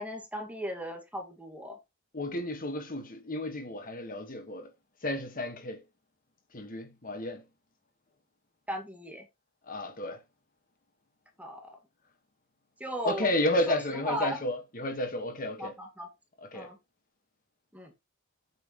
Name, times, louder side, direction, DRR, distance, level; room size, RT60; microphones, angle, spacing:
voice 1, 0.0-1.8 8.7-9.3 11.4-11.8 12.8-13.3 13.7-14.4 15.6-16.1 16.5-16.8 17.7-17.9, equal, 5° right, 2.0 m, -37 dB
voice 2, 2.1-4.7 5.0-5.8 6.5-7.4 9.7-10.2 13.0-15.7 16.4-16.7, left 1 dB, 45° left, 1.6 m, -32 dB
8.8 x 6.1 x 3.1 m
head